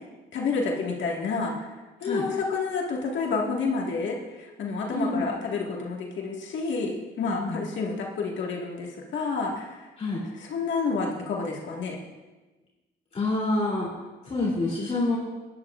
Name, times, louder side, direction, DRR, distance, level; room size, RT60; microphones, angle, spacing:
voice 1, 0.3-1.7 2.0-9.9 10.3-12.0, left 4 dB, 70° left, -1 dB, 1.8 m, -29 dB
voice 2, 4.9-5.3 7.2-7.7 10.0-10.2 13.1-13.9 14.2-15.2, left 2 dB, 30° left, -5 dB, 3.1 m, -27 dB
15.5 x 10.5 x 2.5 m, 1.2 s
cardioid pair, 90°, 20 cm